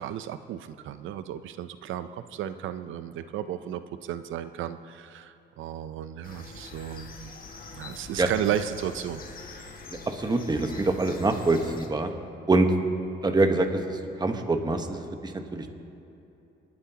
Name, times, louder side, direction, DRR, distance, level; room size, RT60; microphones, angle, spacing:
voice 1, 0.0-7.3 7.7-9.2, right 10 dB, 80° right, 11 dB, 0.6 m, -34 dB
sound 1, 6.2-11.9, left 4 dB, 45° left, 1.5 m, -44 dB
voice 2, 10.1-12.1 12.5-12.7 13.2-15.7, right 2 dB, 20° right, 5 dB, 1.2 m, -25 dB
28.0 x 9.7 x 2.9 m, 2.8 s
cardioid pair, 90°, 20 cm